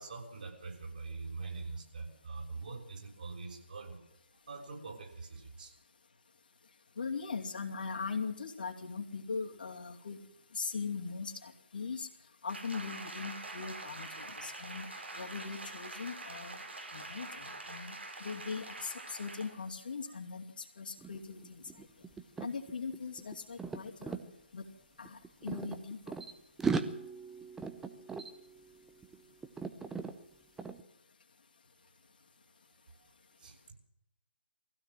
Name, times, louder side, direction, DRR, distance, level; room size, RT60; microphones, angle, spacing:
voice 1, 0.0-4.0 4.5-5.8 33.4-33.7, right 4 dB, 50° right, 1 dB, 6.2 m, -44 dB
voice 2, 7.0-10.2 10.5-12.1 12.4-14.9 15.1-16.6 16.9-17.9 18.2-21.9 22.4-24.2 24.5-24.7 25.0-26.0, left 5 dB, 50° left, 3 dB, 2.7 m, -40 dB
Applause, 12.5-19.6 20.0-20.2, right 2 dB, 70° right, 4.8 m, -45 dB
sound 1, 21.0-21.2 21.4-24.2 25.0-26.3 26.6-29.2 29.4-30.1 30.6-30.8, right 5 dB, 5° right, 0.8 m, -38 dB
21.0 x 16.0 x 7.7 m, 0.78 s
figure-of-eight pair, 145°, 6 cm